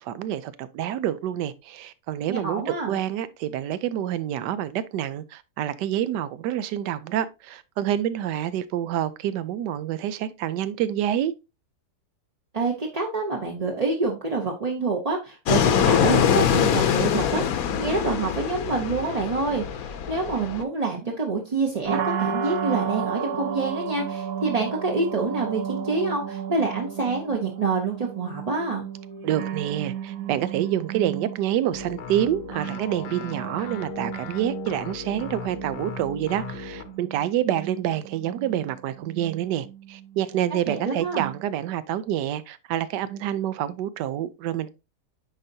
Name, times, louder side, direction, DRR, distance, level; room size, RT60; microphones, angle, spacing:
voice 1, 0.0-11.3 29.2-44.7, right 11 dB, 90° right, 1.2 m, -27 dB
voice 2, 2.3-3.0 12.5-28.8 40.7-41.3, right 3 dB, 35° right, 0.6 m, -27 dB
Fixed-wing aircraft airplane, 15.5-20.6, left 8 dB, 65° left, 1.1 m, -23 dB
sound 1, 21.8-41.7, right 8 dB, 65° right, 1.1 m, -34 dB
sound 2, 31.7-37.0, left 7 dB, 80° left, 1.4 m, -38 dB
9.8 x 4.0 x 2.7 m
omnidirectional pair, 1.8 m